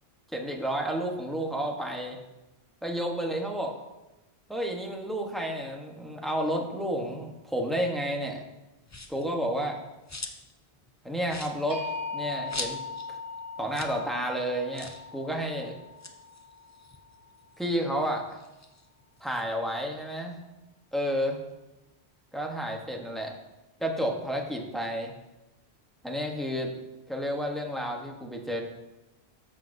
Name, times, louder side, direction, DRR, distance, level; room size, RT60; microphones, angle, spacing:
voice 1, 0.3-2.2 2.8-3.7 4.5-8.4 9.1-9.8 11.0-11.8 12.1-12.8 13.6-15.7 17.6-18.4 19.2-20.4 20.9-21.4 22.3-23.4 23.8-25.1 26.0-26.7 27.1-28.6, equal, ahead, 0 dB, 0.9 m, -31 dB
sound 1, 8.9-9.3 9.7-10.6 10.9-11.0 11.2-13.1 13.4-13.5 13.7-14.0 14.3-14.4 14.7-15.1 15.8-17.6 18.0-19.4, left 3 dB, 25° left, 0.4 m, -41 dB
sound 2, 11.7-17.7, left 4 dB, 90° right, 2.2 m, -40 dB
13.5 x 5.6 x 2.6 m, 0.99 s
omnidirectional pair, 1.1 m